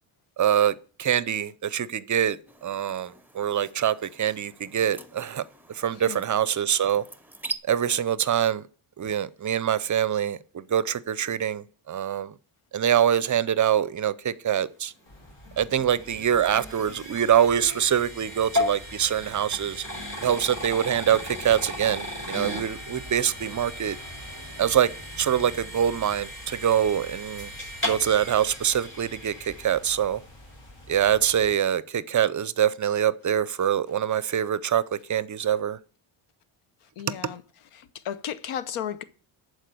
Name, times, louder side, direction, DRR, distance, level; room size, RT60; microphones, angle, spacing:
voice 1, 0.4-2.4 2.6-5.4 5.7-7.0 7.7-8.6 9.0-12.3 12.7-14.9 15.6-19.8 20.2-24.0 24.6-24.9 25.2-27.5 27.9-30.2 30.9-35.8, right 9 dB, 40° right, 0.5 m, -24 dB
sound 1, 2.5-7.5, right 3 dB, 5° right, 0.8 m, -42 dB
sound 2, 15.1-31.5, left 1 dB, 55° left, 4.3 m, -47 dB
sound 3, 15.1-30.3, left 1 dB, 25° left, 5.5 m, -36 dB
voice 2, 15.5-15.8 37.0-37.4 37.7-39.0, left 9 dB, 85° left, 0.9 m, -34 dB
11.0 x 4.7 x 7.7 m
cardioid pair, 95°, 50 cm